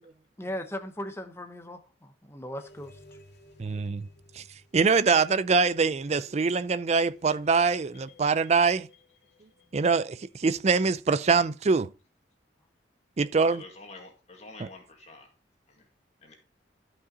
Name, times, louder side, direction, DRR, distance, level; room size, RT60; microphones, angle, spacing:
voice 1, 0.4-3.2, left 1 dB, 15° left, 0.9 m, -38 dB
sound 1, 2.6-10.6, left 2 dB, 60° left, 2.4 m, -56 dB
voice 2, 3.6-4.1 4.4-4.5 4.7-8.9 9.7-11.9 13.2-13.6, right 4 dB, 35° right, 0.4 m, -24 dB
voice 3, 13.5-15.3 15.7-15.9 16.2-16.4, left 2 dB, 35° left, 2.0 m, -48 dB
12.5 x 5.6 x 3.9 m
head